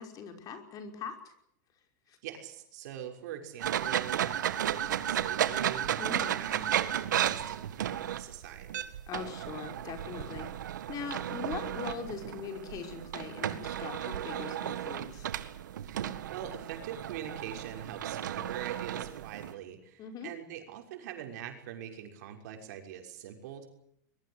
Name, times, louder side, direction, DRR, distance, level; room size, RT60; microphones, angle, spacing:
voice 1, 0.0-1.3 2.1-2.2 6.0-6.3 9.1-15.3 20.0-20.3, left 6 dB, 40° left, 6 dB, 5.4 m, -41 dB
voice 2, 2.2-6.1 6.4-8.9 15.8-23.7, right 10 dB, 70° right, 3 dB, 6.2 m, -43 dB
sound 1, 3.6-19.5, right 11 dB, 90° right, 1.9 m, -34 dB
22.5 x 22.0 x 8.2 m, 0.74 s
hypercardioid pair, 120°, 10 cm